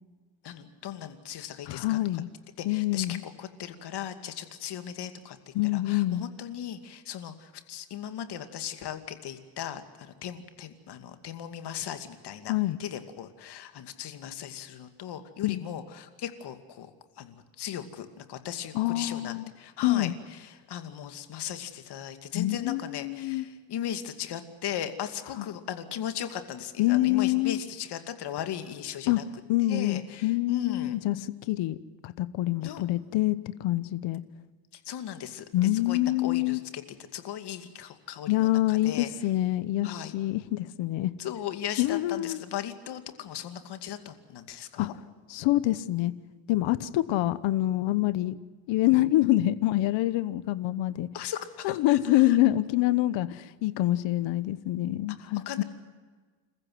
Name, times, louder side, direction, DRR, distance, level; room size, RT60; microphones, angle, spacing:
voice 1, 0.4-2.0 2.6-16.9 17.2-29.2 29.7-31.0 32.6-32.8 34.7-39.1 39.8-40.1 41.2-44.9 51.1-52.4 55.2-55.6, left 10 dB, 60° left, 9 dB, 2.5 m, -38 dB
voice 2, 1.7-2.3 2.6-3.2 5.5-6.3 12.5-12.8 15.4-15.6 18.7-19.5 19.8-20.1 22.3-23.5 25.4-25.5 26.8-27.6 29.1-29.2 29.5-31.2 31.5-31.8 32.0-34.2 35.5-36.6 38.3-41.1 41.8-42.4 44.8-44.9 45.3-46.1 46.5-48.4 48.7-51.1 51.6-55.6, left 16 dB, 80° left, 16 dB, 1.1 m, -26 dB
28.5 x 15.0 x 9.3 m, 1.4 s
cardioid pair, 115°, 44 cm